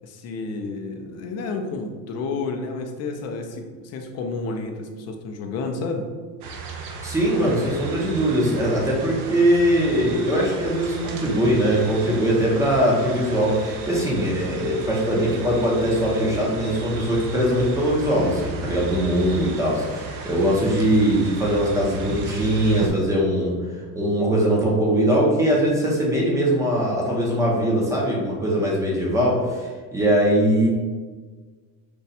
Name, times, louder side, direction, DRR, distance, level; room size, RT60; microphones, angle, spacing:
voice 1, 0.0-6.1, left 3 dB, 40° left, 4 dB, 0.5 m, -30 dB
sound 1, 6.4-22.9, right 4 dB, 55° right, 0.6 m, -35 dB
voice 2, 7.0-23.5 23.9-30.7, equal, 5° right, -3 dB, 0.7 m, -21 dB
5.3 x 2.3 x 4.1 m, 1.5 s
cardioid pair, 160°, 42 cm